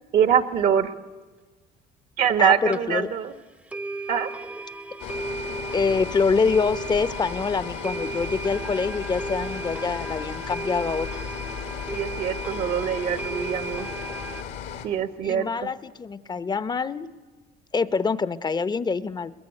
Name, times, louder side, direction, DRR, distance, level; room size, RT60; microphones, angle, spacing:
voice 1, 0.1-0.9 2.2-3.3 4.1-4.3 11.9-13.9 14.8-15.5, right 8 dB, 60° right, 10 dB, 1.2 m, -23 dB
voice 2, 2.4-3.1 5.7-11.1 15.2-17.1 17.7-19.3, left 4 dB, 25° left, 15 dB, 0.8 m, -25 dB
sound 1, 2.4-2.5 2.7-2.8 3.2-3.3 3.7-14.4, right 3 dB, 10° right, 0.7 m, -35 dB
sound 2, 5.0-14.9, left 8 dB, 80° left, 2.2 m, -35 dB
21.5 x 21.5 x 9.8 m, 1.4 s
cardioid pair, 110°, 17 cm